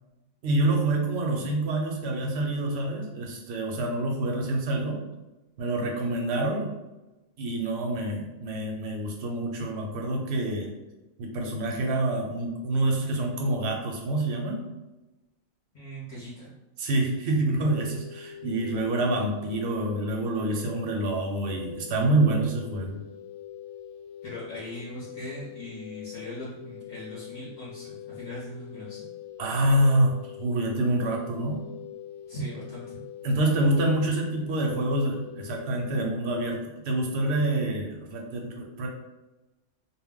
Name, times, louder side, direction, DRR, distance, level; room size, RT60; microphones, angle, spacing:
voice 1, 0.4-5.0 5.6-6.8 7.4-10.8 11.2-14.6 16.8-23.0 29.4-31.6 33.2-38.9, right 1 dB, 60° right, 0 dB, 0.8 m, -27 dB
voice 2, 15.7-16.5 24.2-29.1 32.3-33.0, equal, 40° left, -8 dB, 0.6 m, -39 dB
sound 1, 17.6-35.9, left 11 dB, 70° left, 0.9 m, -44 dB
2.3 x 2.1 x 3.5 m, 1.1 s
omnidirectional pair, 1.4 m